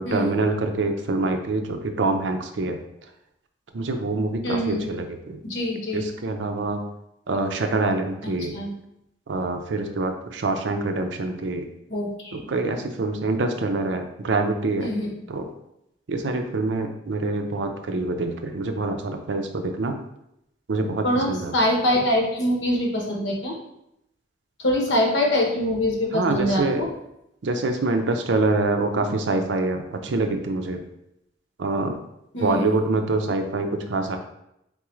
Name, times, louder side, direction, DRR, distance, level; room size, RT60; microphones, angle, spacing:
voice 1, 0.0-2.8 3.7-5.4 5.9-6.8 7.3-8.6 9.3-11.7 12.5-14.9 15.3-15.5 16.1-20.0 20.7-21.5 26.1-26.8 27.4-30.8 31.6-32.0 32.4-34.2, right 3 dB, 80° right, 5 dB, 0.5 m, -25 dB
voice 2, 4.4-4.9 5.4-6.1 8.2-8.7 11.9-12.5 14.8-15.1 21.0-23.5 24.6-26.9 32.3-32.8, left 1 dB, 85° left, -1 dB, 1.0 m, -24 dB
3.8 x 3.6 x 3.1 m, 0.81 s
head